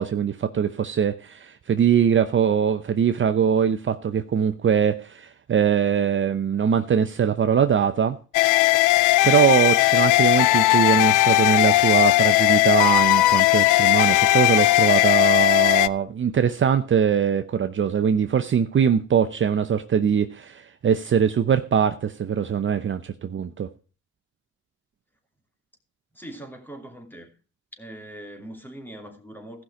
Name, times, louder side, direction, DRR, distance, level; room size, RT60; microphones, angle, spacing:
voice 1, 0.0-8.2 8.7-8.8 9.2-23.7, right 8 dB, 40° right, 0.8 m, -22 dB
sound 1, 8.3-15.9, left 19 dB, 85° left, 0.5 m, -18 dB
voice 2, 26.1-27.4 27.8-29.6, right 1 dB, 5° left, 2.6 m, -41 dB
15.0 x 5.9 x 4.8 m
cardioid pair, 90°, 30 cm